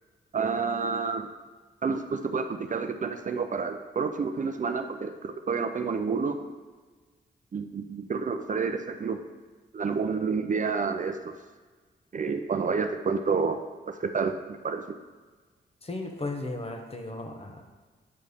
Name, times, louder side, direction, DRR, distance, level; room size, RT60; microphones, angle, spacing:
voice 1, 0.3-1.3 1.8-6.4 7.5-9.2 9.7-11.3 12.1-13.6 13.9-14.4 14.6-15.0, right 5 dB, 45° right, 7 dB, 0.5 m, -29 dB
voice 2, 15.8-17.6, left 2 dB, 30° left, 3 dB, 1.0 m, -35 dB
8.5 x 3.2 x 5.4 m, 1.4 s
cardioid pair, 65°, 19 cm